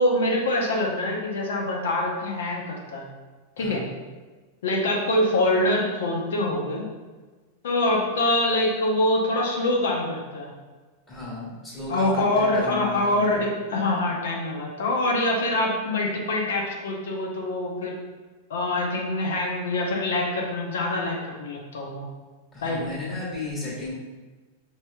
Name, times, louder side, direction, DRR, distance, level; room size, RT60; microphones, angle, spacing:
voice 1, 0.0-3.1 3.6-3.8 4.6-6.9 7.6-10.5 11.9-18.0 18.5-22.1 22.6-22.8, left 1 dB, 80° left, 0 dB, 0.8 m, -25 dB
voice 2, 11.1-13.4 22.5-23.9, left 2 dB, 15° left, -7 dB, 1.4 m, -34 dB
4.7 x 2.8 x 2.3 m, 1.3 s
hypercardioid pair, 120°, 0 cm